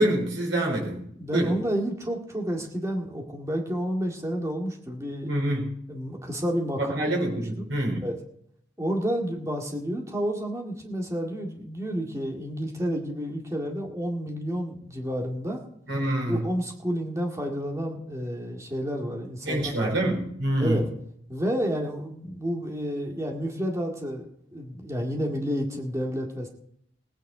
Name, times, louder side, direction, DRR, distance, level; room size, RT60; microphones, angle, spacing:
voice 1, 0.0-1.0 1.3-1.5 5.2-5.7 6.8-8.0 15.9-16.4 19.4-20.8, right 1 dB, 80° right, -1 dB, 4.6 m, -26 dB
voice 2, 1.2-5.3 5.9-6.9 8.0-8.2 8.8-15.6 16.3-19.9 20.6-20.9 21.3-24.3 24.5-26.5, equal, 15° right, 1 dB, 2.0 m, -30 dB
17.5 x 9.4 x 4.9 m, 0.68 s
head